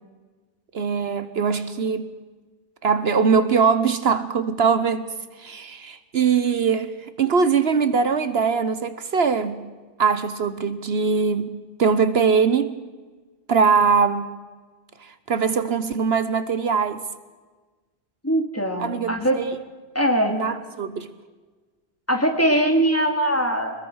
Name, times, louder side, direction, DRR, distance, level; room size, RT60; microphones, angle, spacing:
voice 1, 0.7-2.1 2.8-5.1 5.4-6.9 7.2-9.6 10.0-11.5 11.8-12.7 13.5-14.3 15.0-17.0 18.8-19.5 20.3-21.1, right 5 dB, 70° right, 1.3 m, -21 dB
voice 2, 18.2-19.4 19.9-20.3 22.1-23.7, right 1 dB, 15° left, 2.9 m, -21 dB
24.0 x 21.5 x 6.4 m
omnidirectional pair, 1.1 m